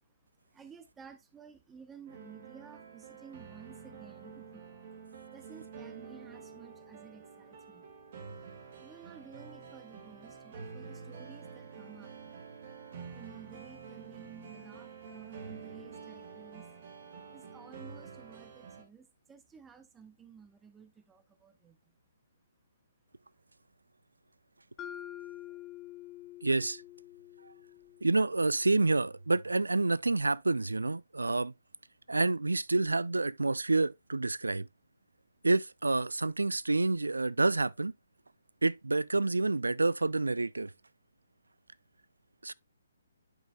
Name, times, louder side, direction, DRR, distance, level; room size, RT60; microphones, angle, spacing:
voice 1, 0.5-4.6 5.3-7.9 8.8-12.3 13.1-16.7 17.3-21.9, right 6 dB, 10° right, 0.7 m, -54 dB
sound 1, 2.1-18.8, right 5 dB, 45° right, 1.9 m, -48 dB
Mallet percussion, 24.8-28.8, left 12 dB, 20° left, 0.4 m, -47 dB
voice 2, 26.4-26.8 28.0-31.5 32.1-34.7 35.4-37.9 38.6-40.7 42.4-42.5, right 3 dB, 80° right, 0.3 m, -28 dB
10.5 x 5.5 x 2.3 m
figure-of-eight pair, 135°, 0 cm